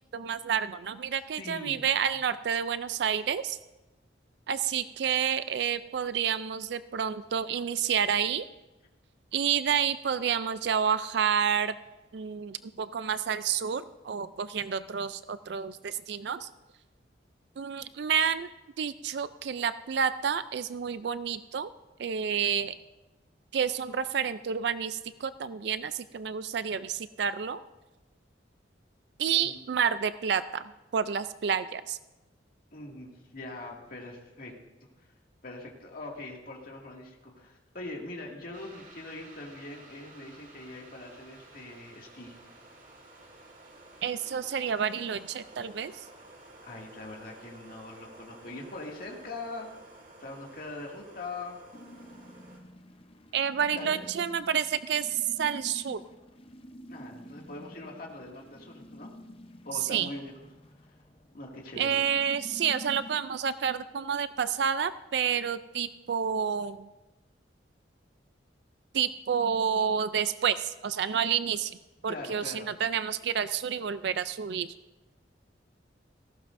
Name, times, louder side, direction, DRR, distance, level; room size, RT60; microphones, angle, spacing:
voice 1, 0.1-3.6 4.5-8.5 9.3-11.7 12.1-16.5 17.6-18.5 18.8-21.7 22.0-22.8 23.5-27.6 29.2-32.0 44.0-46.1 53.3-56.0 59.7-60.1 61.8-66.9 68.9-71.8 72.0-74.7, right 7 dB, 60° right, 13 dB, 0.4 m, -29 dB
voice 2, 1.4-1.8 29.4-29.6 32.7-34.5 35.4-42.4 46.6-51.6 53.7-54.0 56.9-59.1 59.6-60.3 61.3-62.0 72.1-72.7, left 2 dB, 50° left, -1 dB, 2.2 m, -42 dB
sound 1, 38.5-52.6, right 2 dB, 45° right, 1.9 m, -53 dB
sound 2, 51.7-63.2, left 1 dB, 30° left, 0.7 m, -49 dB
18.0 x 15.0 x 2.6 m, 1.1 s
head